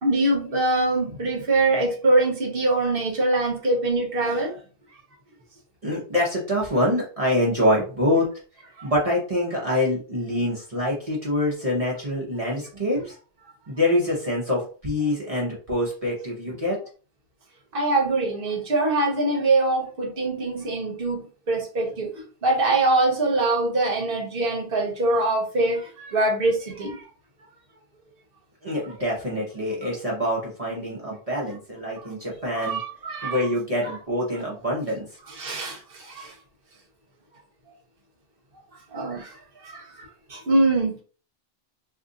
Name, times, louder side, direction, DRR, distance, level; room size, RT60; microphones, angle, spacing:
voice 1, 0.0-4.6 13.0-13.1 17.7-27.0 32.0-32.1 32.5-33.4 33.8-33.9 35.3-36.3 38.9-39.4 39.6-41.0, right 2 dB, 60° right, 1.2 m, -24 dB
voice 2, 5.8-8.3 8.8-13.2 13.7-16.8 28.6-32.8 33.2-35.1, left 1 dB, 35° right, 0.9 m, -25 dB
2.6 x 2.5 x 3.8 m
omnidirectional pair, 1.1 m